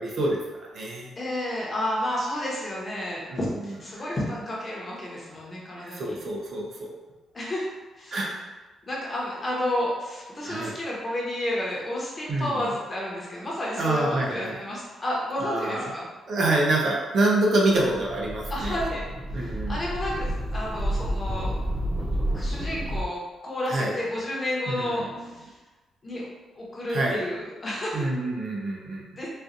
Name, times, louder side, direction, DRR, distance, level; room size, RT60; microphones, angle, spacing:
voice 1, 0.0-1.1 3.3-3.4 4.0-4.1 5.8-6.9 8.1-8.5 10.4-10.8 12.3-12.7 13.8-14.6 15.4-15.9 16.3-18.8 19.3-19.8 23.7-23.9 24.7-25.0 26.1-26.2 26.9-27.2 27.9-29.0, right 2 dB, 60° right, -3 dB, 0.7 m, -26 dB
voice 2, 1.2-6.2 7.3-8.2 8.9-16.1 18.5-19.1 19.4-21.5 22.3-25.5 26.0-26.3 26.6-28.1 29.2-29.3, left 1 dB, 30° left, -4 dB, 1.0 m, -31 dB
sound 1, 17.8-23.0, equal, 15° right, 0.4 m, -30 dB
4.2 x 2.4 x 2.5 m, 1.2 s
cardioid pair, 110°, 0 cm